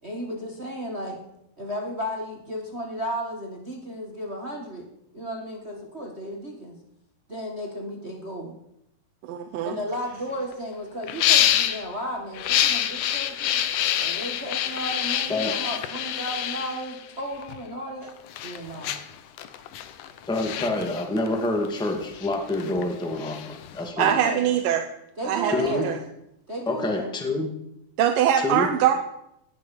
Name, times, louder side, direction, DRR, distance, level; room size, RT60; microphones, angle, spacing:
voice 1, 0.0-1.2 1.6-4.9 5.1-6.8 7.3-8.6 9.6-13.6 14.0-18.1 18.4-19.0 23.9-24.5 25.2-25.9 26.5-27.1, equal, 40° right, 1 dB, 0.9 m, -34 dB
voice 2, 9.3-9.8 24.0-24.8 25.3-26.0 28.0-29.0, right 10 dB, 75° right, 6 dB, 2.5 m, -22 dB
sound 1, 9.9-10.0 10.3-10.5 11.0-11.9 12.3-17.6 18.1-23.9, left 11 dB, 70° left, 2.2 m, -26 dB
voice 3, 20.3-24.2 25.5-25.9 26.6-27.5 28.4-28.7, left 2 dB, ahead, 3 dB, 1.3 m, -27 dB
18.5 x 10.5 x 5.9 m, 0.80 s
omnidirectional pair, 4.1 m